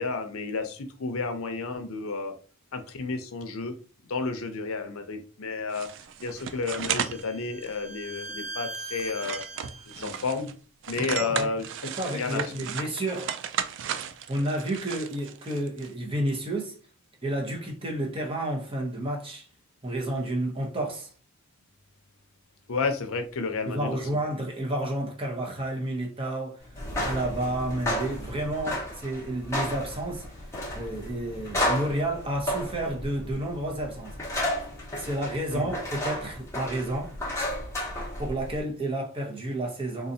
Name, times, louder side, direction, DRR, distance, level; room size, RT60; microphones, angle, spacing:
voice 1, 0.0-2.3 2.7-3.7 4.1-5.9 6.2-9.4 9.9-10.5 10.9-11.6 12.1-12.4 22.7-24.0 35.5-35.7, left 4 dB, 70° left, 0.6 m, -31 dB
sound 1, 5.7-7.2 7.6-7.7 8.2-8.4 8.7-10.5 10.8-15.9, right 8 dB, 55° right, 0.3 m, -35 dB
Bowed string instrument, 6.3-10.1, right 2 dB, 75° right, 0.7 m, -41 dB
voice 2, 11.0-11.5 12.0-13.3 14.3-16.8 17.2-19.5 19.8-21.1 23.7-26.6 27.0-30.2 30.7-34.2 35.0-37.2 38.2-40.1, right 1 dB, 25° right, 0.8 m, -31 dB
sound 2, 26.7-38.6, left 1 dB, 10° left, 0.9 m, -33 dB
3.8 x 2.4 x 2.7 m
head